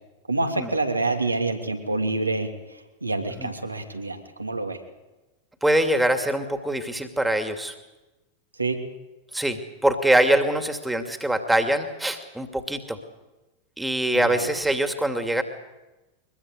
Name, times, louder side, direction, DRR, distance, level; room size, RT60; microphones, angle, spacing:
voice 1, 0.3-4.8 8.5-8.8 14.1-14.5, right 3 dB, 80° right, 5 dB, 3.0 m, -27 dB
voice 2, 5.6-7.7 9.3-13.0 13.8-15.4, right 1 dB, 5° right, 7 dB, 2.6 m, -23 dB
23.5 x 22.0 x 8.2 m, 1.1 s
figure-of-eight pair, 90°, 0 cm